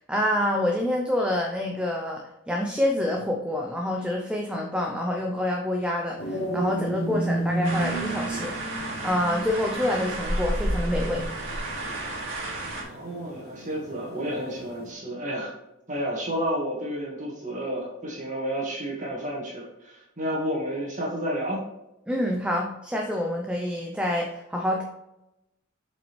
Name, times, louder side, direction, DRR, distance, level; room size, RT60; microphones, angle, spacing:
voice 1, 0.1-8.6 9.0-11.2 22.1-24.8, left 1 dB, 5° right, 1 dB, 0.7 m, -27 dB
sound 1, 6.2-14.9, right 2 dB, 55° left, 1.7 m, -33 dB
sound 2, 7.6-12.8, right 1 dB, 65° right, 2.1 m, -31 dB
voice 2, 12.9-15.5 15.9-21.6, equal, 35° right, -3 dB, 1.8 m, -31 dB
7.5 x 5.2 x 3.3 m, 0.90 s
head